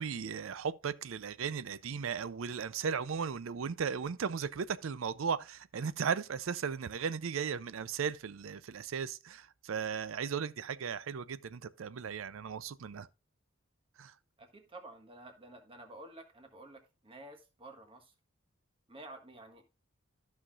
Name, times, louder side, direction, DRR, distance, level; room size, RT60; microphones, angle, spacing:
voice 1, 0.0-13.1 14.0-14.1, right 6 dB, 75° right, 0.5 m, -36 dB
voice 2, 14.4-18.1 18.9-19.6, right 2 dB, 25° right, 1.4 m, -51 dB
13.5 x 5.8 x 2.4 m
head